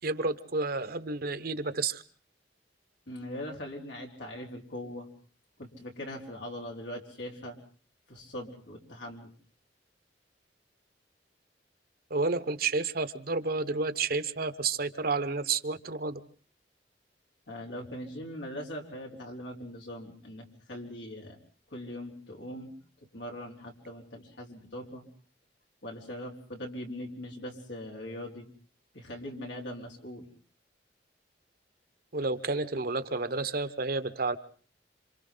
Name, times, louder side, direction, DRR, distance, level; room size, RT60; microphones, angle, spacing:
voice 1, 0.0-2.0 12.1-16.2 32.1-34.4, right 3 dB, 55° right, 12 dB, 1.1 m, -30 dB
voice 2, 3.1-5.1 5.6-7.6 8.1-9.3 17.5-21.4 21.7-22.7 23.1-25.0 25.8-28.4 28.9-30.3, left 1 dB, 90° left, 0 dB, 4.2 m, -41 dB
27.5 x 26.5 x 3.9 m, 0.43 s
head